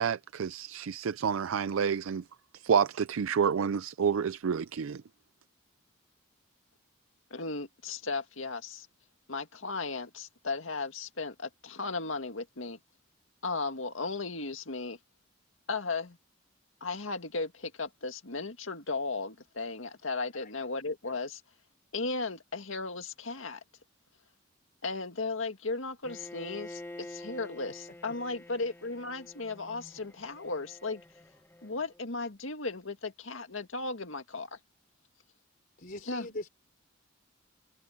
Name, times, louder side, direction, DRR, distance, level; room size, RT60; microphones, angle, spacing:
voice 1, 0.0-2.2 2.5-5.0, right 7 dB, 90° right, 0.4 m, -29 dB
voice 2, 7.3-8.9 9.3-12.8 13.4-15.0 15.7-16.2 16.8-21.4 21.9-23.6 24.8-31.0 31.6-34.6 36.0-36.3, left 3 dB, 80° left, 2.1 m, -36 dB
Bowed string instrument, 26.0-32.0, left 1 dB, 10° left, 1.3 m, -48 dB
voice 3, 35.8-36.5, left 1 dB, 45° left, 4.1 m, -40 dB
head